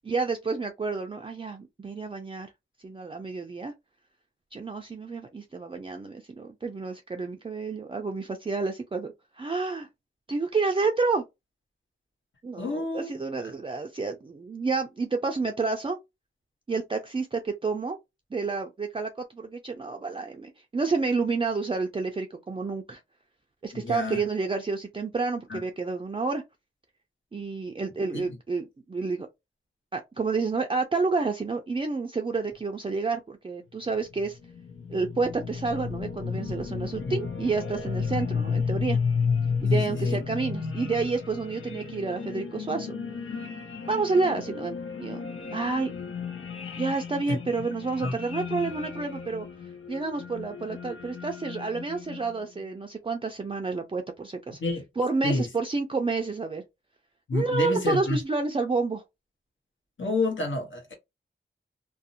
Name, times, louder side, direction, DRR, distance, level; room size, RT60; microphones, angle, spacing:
voice 1, 0.0-2.5 2.8-3.7 4.5-9.9 10.3-11.2 12.4-16.0 16.7-18.0 18.3-23.0 23.6-26.4 27.3-29.3 29.9-34.4 34.9-39.0 39.6-43.0 43.9-45.2 45.5-45.9 46.8-49.5 49.9-54.6 55.0-56.6 57.3-59.0, right 4 dB, 25° right, 0.4 m, -29 dB
voice 2, 12.6-13.1 23.7-24.2 25.5-25.6 28.1-28.4 37.0-37.1 39.7-40.2 47.3-47.4 48.0-48.1 54.6-54.8 55.2-55.5 57.3-58.2 60.0-60.9, left 2 dB, 70° left, 1.0 m, -29 dB
sound 1, 34.0-52.4, left 5 dB, 85° left, 0.6 m, -33 dB
2.5 x 2.0 x 2.6 m
wide cardioid pair, 75°, 20 cm